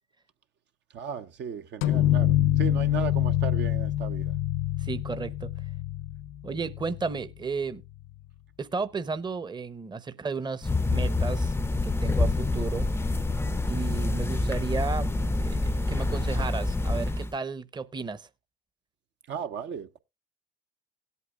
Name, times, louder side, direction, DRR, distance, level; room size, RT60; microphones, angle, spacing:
voice 1, 0.9-4.3 19.3-20.0, right 8 dB, 60° right, 0.8 m, -36 dB
sound 1, 1.8-7.3, left 13 dB, 80° left, 0.5 m, -26 dB
voice 2, 4.8-5.5 6.4-7.8 8.6-11.5 11.8-12.9 13.7-18.3, right 4 dB, 20° right, 0.8 m, -33 dB
sound 2, 10.6-17.3, left 2 dB, 10° left, 0.5 m, -27 dB
17.5 x 8.3 x 2.4 m
supercardioid pair, 65°, 21 cm